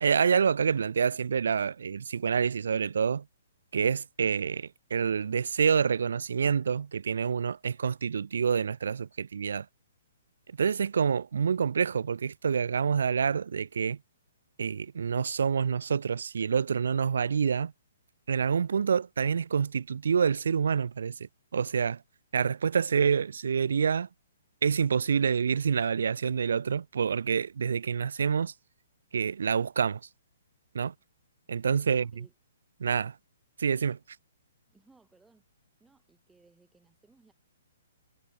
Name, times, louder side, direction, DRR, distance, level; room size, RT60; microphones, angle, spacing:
voice 1, 0.0-3.2 3.7-9.7 10.6-14.0 14.6-17.7 18.3-22.0 22.3-24.1 24.6-28.5 29.1-30.0 30.7-30.9 31.5-32.1 32.8-33.1 33.6-34.0, right 6 dB, 70° right, 0.3 m, -27 dB
voice 2, 31.8-32.3 34.7-35.4 35.8-37.3, right 3 dB, 5° right, 6.8 m, -61 dB
figure-of-eight pair, 130°, 0 cm